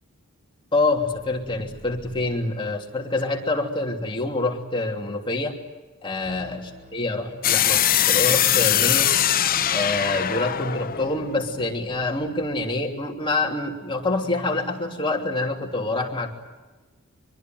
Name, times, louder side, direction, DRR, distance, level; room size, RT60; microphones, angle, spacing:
voice 1, 0.7-5.5 6.0-6.6 6.9-9.1 9.7-16.3, left 2 dB, 25° left, 1 dB, 3.0 m, -26 dB
sound 1, 1.0-2.4 6.2-10.4 14.2-14.9, left 1 dB, 35° right, 6.5 m, -46 dB
sound 2, 7.4-12.3, left 11 dB, 40° left, 0.8 m, -22 dB
25.0 x 23.0 x 9.3 m, 1.2 s
head